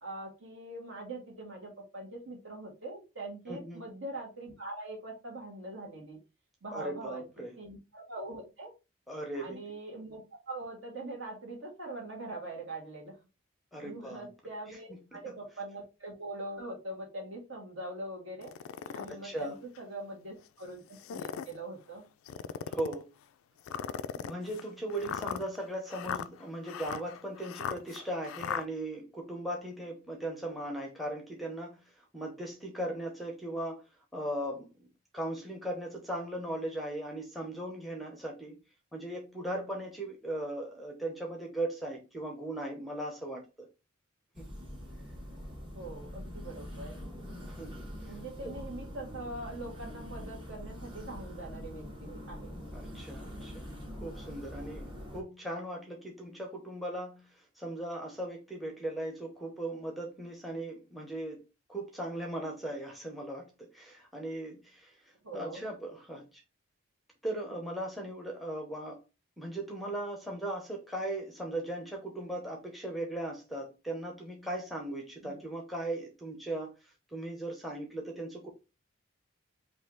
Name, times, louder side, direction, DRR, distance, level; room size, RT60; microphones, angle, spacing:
voice 1, 0.0-6.2 6.6-7.3 7.6-8.7 9.3-10.2 10.5-13.2 13.7-18.5 18.9-20.8 21.1-22.0 45.7-46.9 48.0-52.5 65.2-65.6 75.2-75.4, right 2 dB, 60° right, 1.6 m, -42 dB
voice 2, 3.5-3.8 6.7-7.5 9.1-9.6 13.7-14.3 14.7-15.2 19.1-19.6 22.7-23.1 24.1-31.8 32.1-33.8 34.1-34.9 35.1-38.6 38.9-43.7 44.4-44.5 47.6-47.9 48.4-48.5 52.7-53.7 54.0-61.4 61.7-65.0 65.3-66.4 67.2-69.0 69.4-78.5, right 1 dB, ahead, 0.7 m, -38 dB
sound 1, 18.4-19.1 19.8-19.9 20.9-21.6 22.3-23.0 23.7-28.6, left 8 dB, 75° left, 0.3 m, -38 dB
sound 2, 44.3-55.2, equal, 25° right, 1.3 m, -44 dB
4.2 x 2.7 x 3.8 m
head